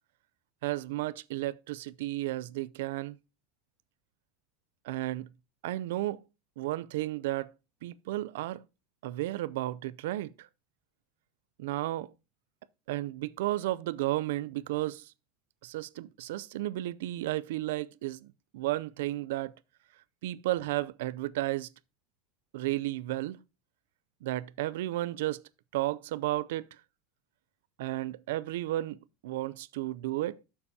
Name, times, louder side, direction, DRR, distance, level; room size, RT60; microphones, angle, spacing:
voice 1, 0.6-3.2 4.8-5.3 5.6-6.2 6.6-7.5 7.8-8.6 9.0-10.5 11.6-12.1 12.9-15.1 15.6-19.5 20.2-21.7 22.5-23.4 24.2-25.4 25.7-26.7 27.8-29.0 29.2-30.4, right 16 dB, 90° right, 0.5 m, -33 dB
12.0 x 6.8 x 2.8 m
supercardioid pair, 170°, 0 cm